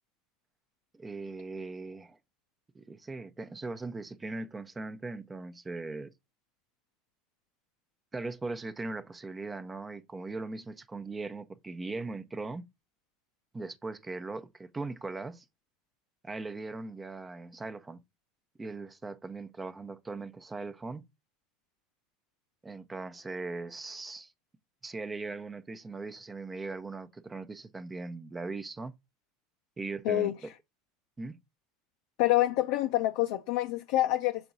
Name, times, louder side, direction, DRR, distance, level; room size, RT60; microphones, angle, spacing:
voice 1, 0.9-2.2 2.7-6.1 8.1-12.7 13.5-15.4 16.2-18.0 18.6-21.0 22.6-24.3 24.8-28.9 29.8-30.5 31.2-31.4, right 3 dB, 20° right, 0.7 m, -39 dB
voice 2, 32.2-34.5, left 15 dB, 65° left, 0.6 m, -27 dB
6.8 x 3.8 x 3.8 m
hypercardioid pair, 90°, 0 cm